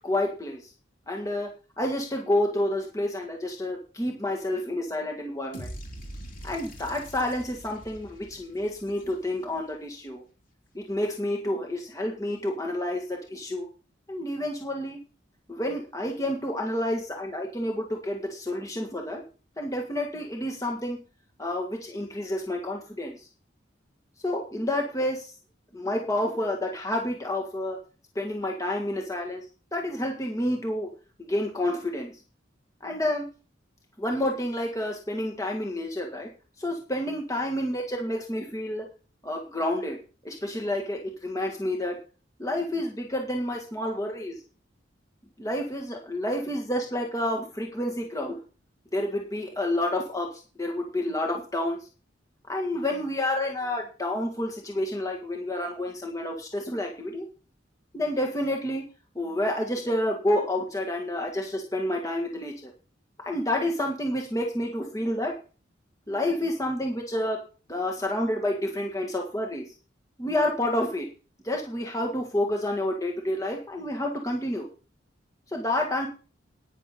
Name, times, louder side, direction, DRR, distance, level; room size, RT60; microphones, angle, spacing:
voice 1, 0.0-0.7 1.1-1.5 1.8-5.7 6.4-10.2 10.7-13.7 14.1-15.0 15.5-19.2 19.6-21.0 21.4-23.3 24.2-25.3 25.7-27.8 28.2-29.4 29.7-30.9 31.3-32.1 32.8-33.2 34.0-36.3 36.6-38.9 39.2-40.0 40.2-42.0 42.4-44.4 45.4-48.3 48.9-51.8 52.5-57.3 57.9-58.8 59.2-62.7 63.3-65.3 66.1-67.4 67.7-69.6 70.2-71.1 71.4-74.7 75.5-76.1, left 1 dB, 20° left, 1 dB, 1.8 m, -29 dB
sound 1, 5.5-9.6, equal, 45° left, 3.0 m, -43 dB
11.5 x 9.9 x 4.3 m, 0.35 s
head